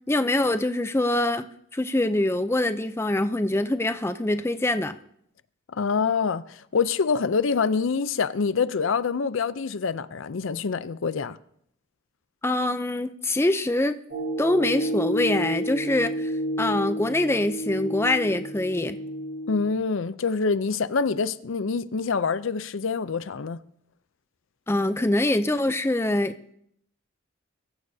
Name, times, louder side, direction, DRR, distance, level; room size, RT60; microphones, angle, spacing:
voice 1, 0.1-1.5 1.7-4.9 12.4-14.0 14.4-16.3 16.6-19.0 24.7-26.4, left 1 dB, 10° left, 0.4 m, -24 dB
voice 2, 5.7-11.4 19.5-23.6, left 5 dB, 70° left, 0.5 m, -26 dB
sound 1, 14.1-19.6, right 1 dB, 60° right, 3.0 m, -30 dB
23.0 x 14.5 x 2.7 m
head